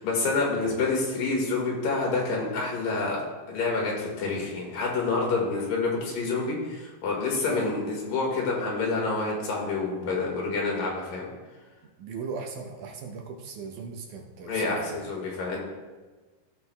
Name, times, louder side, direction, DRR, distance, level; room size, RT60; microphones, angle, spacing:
voice 1, 0.0-3.2 3.5-11.3 14.4-15.6, left 3 dB, 75° left, -2 dB, 3.4 m, -28 dB
voice 2, 7.5-7.9 12.0-15.0, right 5 dB, 75° right, 2 dB, 2.0 m, -38 dB
15.5 x 6.8 x 2.3 m, 1.3 s
omnidirectional pair, 4.0 m